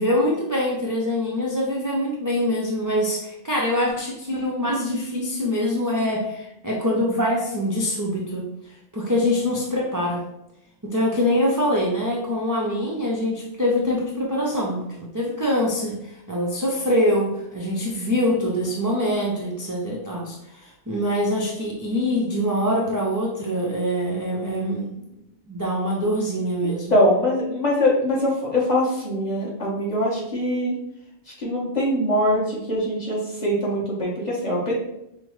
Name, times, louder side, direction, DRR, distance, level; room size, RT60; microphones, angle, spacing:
voice 1, 0.0-10.2 10.8-25.1 25.5-27.0, left 1 dB, 30° right, -4 dB, 0.3 m, -24 dB
voice 2, 26.6-30.7 31.4-34.7, left 1 dB, 40° left, -6 dB, 1.3 m, -23 dB
5.2 x 2.1 x 3.1 m, 0.82 s
omnidirectional pair, 1.1 m